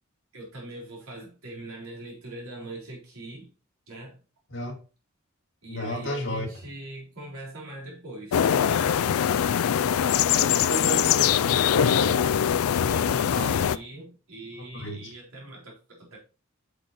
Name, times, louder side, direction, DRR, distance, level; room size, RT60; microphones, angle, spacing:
voice 1, 0.3-3.5 3.9-4.2 5.6-9.1 12.8-16.2, right 1 dB, 85° right, 3.9 m, -41 dB
voice 2, 5.7-6.5 9.9-12.3 13.1-13.6 14.6-15.1, left 1 dB, 55° left, 2.2 m, -33 dB
sound 1, 8.3-13.8, left 9 dB, 80° left, 0.4 m, -22 dB
8.2 x 6.6 x 3.0 m
head